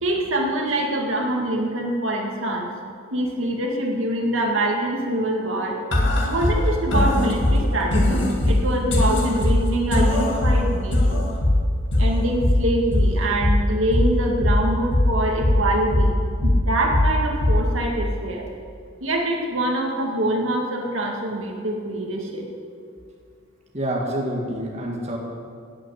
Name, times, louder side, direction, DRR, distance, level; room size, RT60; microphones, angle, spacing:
voice 1, 0.0-2.7 3.1-5.8 6.3-11.2 12.0-16.1 16.4-18.5 19.0-22.4, right 1 dB, 70° right, 0 dB, 2.0 m, -24 dB
sound 1, 5.9-17.9, left 1 dB, 55° left, 2.0 m, -21 dB
voice 2, 23.7-25.2, right 1 dB, 30° right, -2 dB, 1.8 m, -27 dB
14.5 x 6.4 x 9.1 m, 2.3 s
head